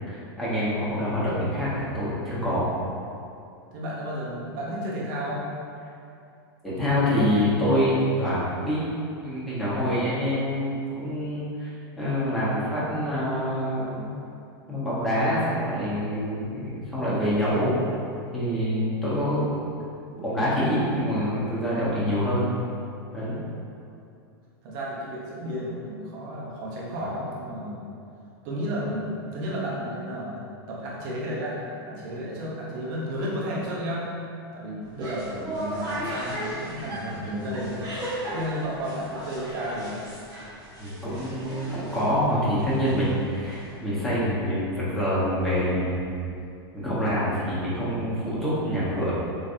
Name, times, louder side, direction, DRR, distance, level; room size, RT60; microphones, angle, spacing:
voice 1, 0.1-2.6 6.6-8.9 9.2-11.7 12.0-14.1 14.7-17.8 18.3-19.5 20.2-22.5 23.1-23.4 40.8-46.2 46.7-49.1, equal, ahead, -11 dB, 1.2 m, -26 dB
voice 2, 3.7-5.4 24.6-27.9 28.4-34.1 34.5-37.8 38.3-40.0, equal, 55° right, -5 dB, 0.9 m, -32 dB
sound 1, 34.8-43.9, right 1 dB, 35° right, 1.1 m, -36 dB
3.9 x 3.2 x 2.7 m, 2.5 s
hypercardioid pair, 130°, 13 cm